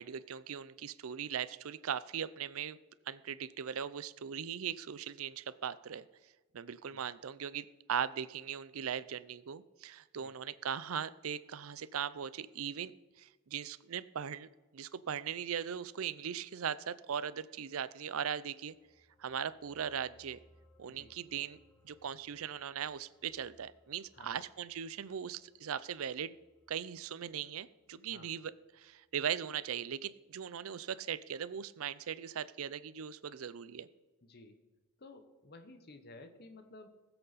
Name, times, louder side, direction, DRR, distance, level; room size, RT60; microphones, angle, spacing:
voice 1, 0.0-2.8 3.1-6.1 6.5-12.9 13.2-14.5 14.7-18.8 19.2-20.4 20.8-21.6 21.8-26.4 26.7-33.9, right 8 dB, 70° right, 17 dB, 0.5 m, -39 dB
sound 1, 18.4-29.2 29.5-29.6, left 1 dB, 5° left, 1.4 m, -69 dB
voice 2, 34.3-34.6 35.0-36.9, left 2 dB, 45° left, 7 dB, 1.0 m, -54 dB
19.0 x 7.9 x 4.1 m, 1.2 s
head